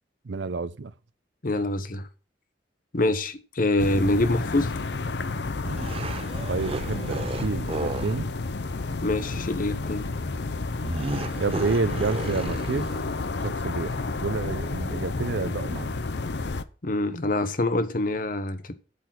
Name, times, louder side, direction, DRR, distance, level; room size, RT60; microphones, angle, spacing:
voice 1, 0.2-0.9 6.5-8.3 11.4-12.9 13.4-16.0, right 4 dB, 80° right, 0.6 m, -29 dB
voice 2, 1.4-2.1 2.9-4.7 9.0-10.1 16.8-18.7, left 2 dB, 50° left, 1.0 m, -25 dB
sound 1, 3.8-16.6, left 3 dB, 70° left, 0.7 m, -31 dB
sound 2, 5.6-8.2 10.8-13.1, right 2 dB, 35° right, 0.6 m, -33 dB
8.4 x 6.8 x 5.8 m
head